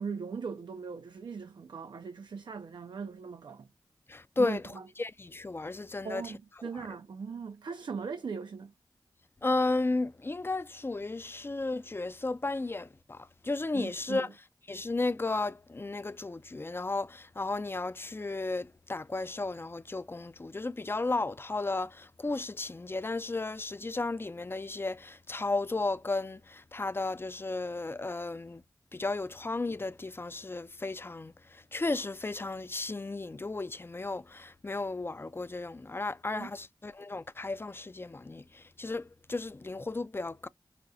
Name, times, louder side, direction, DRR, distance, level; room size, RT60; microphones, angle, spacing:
voice 1, 0.0-3.7 4.4-4.8 6.0-8.7 13.7-14.3 36.3-36.5, right 5 dB, 80° right, 0.5 m, -39 dB
voice 2, 4.1-4.6 5.0-6.2 6.7-6.9 9.4-14.3 14.7-28.6 28.9-40.5, left 3 dB, 30° left, 0.4 m, -34 dB
5.0 x 2.2 x 2.6 m
cardioid pair, 40°, 8 cm